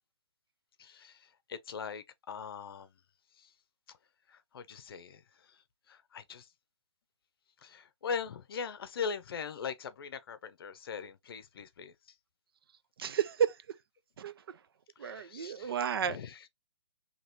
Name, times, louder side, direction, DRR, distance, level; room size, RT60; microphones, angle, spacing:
voice 1, 0.8-3.0 3.3-3.5 3.9-4.0 4.3-6.5 7.6-11.9 15.0-15.8 16.1-16.5, left 6 dB, 55° left, 0.7 m, -41 dB
voice 2, 13.0-13.6 14.2-14.6 15.0-16.2, right 8 dB, 55° right, 0.4 m, -32 dB
4.2 x 3.0 x 2.7 m
hypercardioid pair, 150°, 15 cm